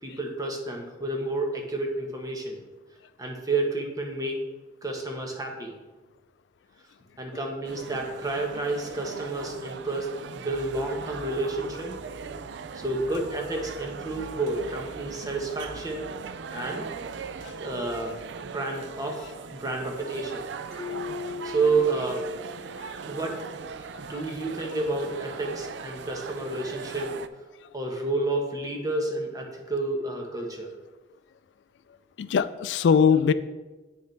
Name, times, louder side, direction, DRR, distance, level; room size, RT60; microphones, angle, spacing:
voice 1, 0.0-2.6 3.2-4.4 4.8-5.7 7.2-12.0 12.7-16.1 16.5-16.9 17.6-18.1 18.5-20.4 21.4-22.3 23.1-23.4 24.0-27.1 27.7-30.7, right 2 dB, 20° right, 1 dB, 1.1 m, -30 dB
sound 1, 7.6-27.3, right 5 dB, 75° right, 0.4 m, -39 dB
sound 2, 10.5-18.2, left 1 dB, 55° left, 1.0 m, -50 dB
sound 3, 20.7-23.3, left 6 dB, 5° left, 2.0 m, -39 dB
voice 2, 32.2-33.3, left 6 dB, 80° left, 14 dB, 0.3 m, -22 dB
8.4 x 6.5 x 3.3 m, 1.2 s
head